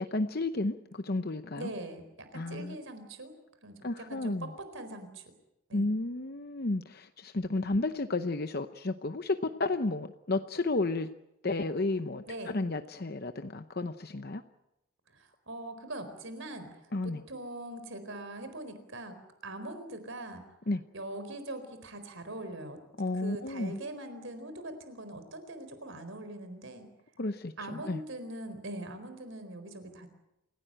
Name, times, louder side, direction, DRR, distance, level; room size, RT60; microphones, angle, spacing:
voice 1, 0.0-1.7 2.3-2.8 3.8-4.5 5.7-11.1 11.4-14.4 16.9-17.2 20.7-20.8 23.0-23.8 27.2-28.0, left 2 dB, 45° left, 9 dB, 0.8 m, -32 dB
voice 2, 1.6-3.4 3.6-5.2 5.7-5.9 12.3-12.5 15.1-16.7 17.0-19.2 19.4-20.4 20.9-22.8 23.1-26.9 27.6-30.1, right 1 dB, 60° right, 9 dB, 4.3 m, -42 dB
28.0 x 17.0 x 9.0 m, 0.89 s
head